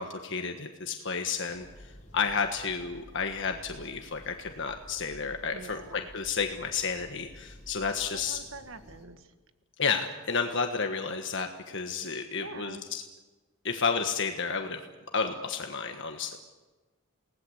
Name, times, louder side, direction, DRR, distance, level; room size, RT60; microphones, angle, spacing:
voice 1, 0.0-8.4 9.8-13.0 13.6-14.8 15.1-16.4, left 5 dB, 55° left, 5 dB, 1.5 m, -31 dB
sound 1, 1.5-9.1, equal, 35° left, 4.4 m, -52 dB
voice 2, 5.5-6.1 8.1-9.3 12.4-12.8, right 2 dB, 60° right, 9 dB, 1.6 m, -45 dB
29.0 x 19.0 x 8.1 m, 1.3 s
head